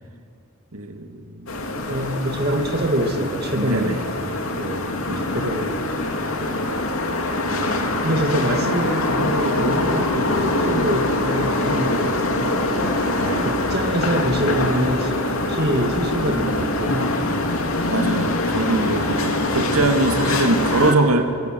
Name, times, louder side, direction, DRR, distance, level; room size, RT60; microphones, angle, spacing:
voice 1, 0.7-1.5 3.6-4.0 6.5-6.7 13.2-13.5 17.9-21.5, right 2 dB, 90° right, 5 dB, 2.4 m, -22 dB
sound 1, 1.5-20.9, left 2 dB, 75° left, 2.7 m, -23 dB
voice 2, 1.8-3.9 4.5-5.9 7.4-7.7 8.0-12.6 13.4-17.1, right 1 dB, 45° right, 3 dB, 2.0 m, -25 dB
26.0 x 24.5 x 7.8 m, 2.4 s
head